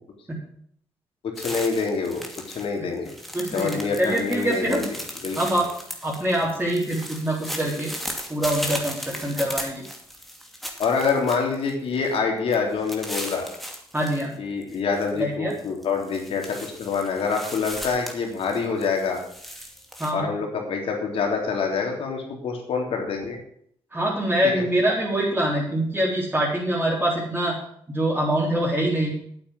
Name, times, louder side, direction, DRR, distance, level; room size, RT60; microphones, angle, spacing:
voice 1, 1.4-3.1 3.5-5.0 5.2-5.6 10.8-13.4 14.4-19.2 20.1-23.4 24.4-24.6, left 5 dB, 70° left, 1 dB, 3.4 m, -26 dB
sound 1, 1.4-2.7 2.9-11.7 12.0-12.2 12.5-14.3 14.6-15.1 15.5-20.1, equal, ahead, 2.6 m, -37 dB
voice 2, 3.3-4.9 5.4-5.7 6.0-7.9 8.3-9.8 13.9-14.3 15.1-15.5 20.0-20.3 23.9-27.5 27.9-29.1, right 1 dB, 15° right, -6 dB, 4.2 m, -24 dB
8.8 x 8.6 x 7.7 m, 0.66 s
supercardioid pair, 65°, 10 cm